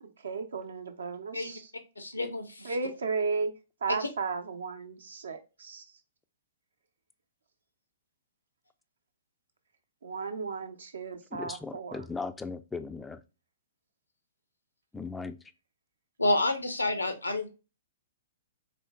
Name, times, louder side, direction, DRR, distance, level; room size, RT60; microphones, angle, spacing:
voice 1, 0.0-1.7 2.6-3.5 3.8-5.9 10.0-12.0, right 4 dB, 70° right, 0.7 m, -34 dB
voice 2, 2.0-2.7 3.9-4.1 16.2-17.5, left 2 dB, 85° left, 0.7 m, -29 dB
voice 3, 11.3-13.2 14.9-15.4, left 4 dB, 10° left, 0.3 m, -38 dB
4.2 x 3.1 x 2.3 m
figure-of-eight pair, 115°, 0 cm